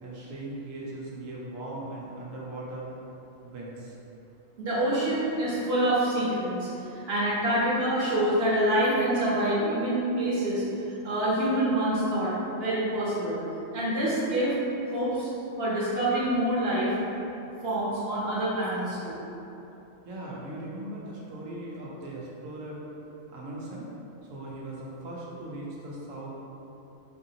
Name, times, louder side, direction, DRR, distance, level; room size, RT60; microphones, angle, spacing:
voice 1, 0.0-2.9 3.4-4.0 20.0-22.8 23.3-23.9 24.3-26.3, right 1 dB, 85° right, -5 dB, 1.1 m, -39 dB
voice 2, 4.6-12.3 12.6-13.4 13.7-14.6 14.9-15.3 15.6-16.9 17.6-19.2, right 1 dB, 55° right, -7 dB, 1.1 m, -26 dB
4.5 x 2.6 x 2.7 m, 2.9 s
omnidirectional pair, 1.3 m